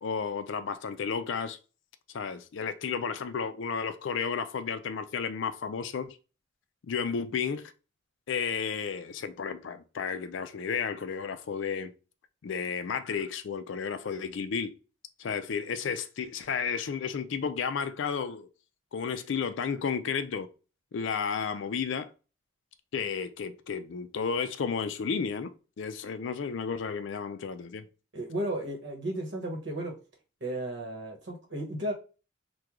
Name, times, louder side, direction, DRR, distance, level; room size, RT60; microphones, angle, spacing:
voice 1, 0.0-1.6 2.1-6.2 6.8-7.7 8.3-11.9 12.4-14.7 15.2-18.5 18.9-20.5 20.9-22.1 22.9-25.5 25.8-27.9, left 6 dB, 65° left, 0.4 m, -32 dB
voice 2, 28.1-29.9 30.4-31.9, right 1 dB, 55° right, 1.0 m, -34 dB
3.0 x 2.2 x 3.6 m
head